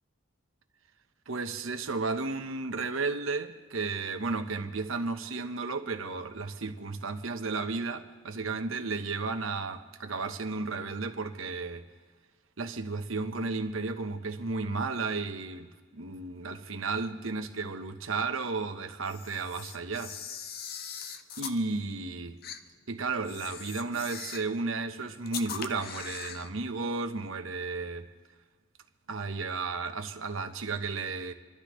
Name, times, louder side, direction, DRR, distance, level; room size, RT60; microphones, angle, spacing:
voice 1, 1.3-11.9 12.6-20.2 21.4-22.4 22.9-28.1 29.1-31.3, right 3 dB, 85° right, 1.0 m, -33 dB
Camera, 19.0-21.6 22.4-22.6 23.2-24.5 25.3-26.5, left 7 dB, 45° left, 0.7 m, -41 dB
28.5 x 12.0 x 3.1 m
head